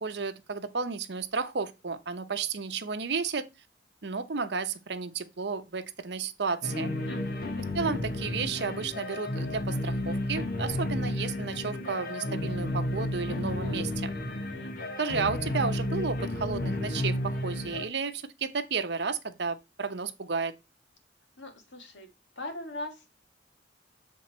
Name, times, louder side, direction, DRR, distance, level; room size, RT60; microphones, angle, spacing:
voice 1, 0.0-3.5 4.0-6.9 7.7-14.1 15.0-20.5, right 5 dB, 65° right, 0.8 m, -32 dB
sound 1, 6.6-17.9, left 1 dB, 55° left, 1.1 m, -32 dB
voice 2, 7.1-7.4 14.5-14.8 21.4-22.1 22.4-23.1, left 2 dB, 75° left, 1.7 m, -40 dB
7.4 x 3.8 x 4.3 m
head